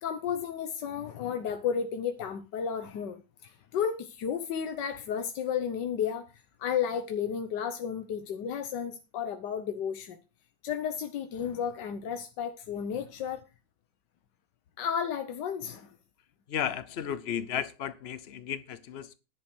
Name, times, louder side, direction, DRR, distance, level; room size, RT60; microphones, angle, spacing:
voice 1, 0.0-6.3 6.6-10.2 10.6-13.4 14.8-15.9, left 7 dB, 85° left, 1.6 m, -33 dB
voice 2, 16.5-19.1, left 9 dB, 70° left, 0.6 m, -34 dB
10.5 x 6.9 x 6.0 m
omnidirectional pair, 1.8 m